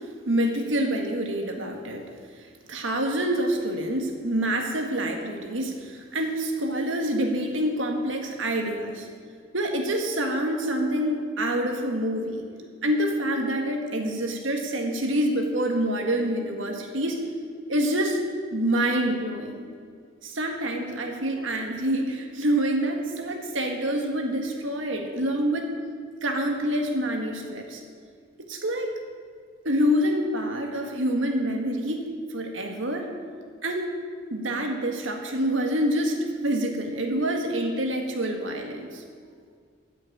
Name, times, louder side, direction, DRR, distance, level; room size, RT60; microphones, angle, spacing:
voice 1, 0.3-2.1 2.4-9.1 9.5-12.4 12.8-17.2 17.7-18.2 18.5-19.7 20.2-25.7 26.2-27.8 28.5-28.9 29.6-33.1 33.6-33.9 34.3-39.0, right 1 dB, 70° right, 3 dB, 1.8 m, -27 dB
13.5 x 6.4 x 9.0 m, 2.1 s
head